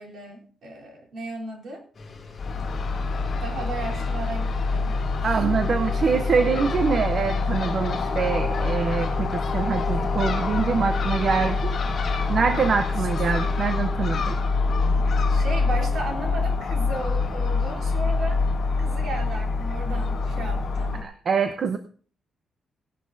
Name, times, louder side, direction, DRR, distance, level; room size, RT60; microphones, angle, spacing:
voice 1, 0.0-1.8 3.4-5.4 12.9-13.1 15.3-18.4 18.8-21.1, right 2 dB, 60° right, -2 dB, 3.5 m, -35 dB
sound 1, 1.9-13.8, left 4 dB, 25° left, 5.3 m, -45 dB
Crow / Gull seagull, 2.4-21.0, left 3 dB, 50° left, 3.1 m, -25 dB
voice 2, 5.2-11.8 12.3-14.3 21.0-21.8, right 5 dB, 45° right, 8 dB, 0.7 m, -24 dB
19.0 x 11.5 x 2.7 m, 0.43 s
wide cardioid pair, 160°, 0 cm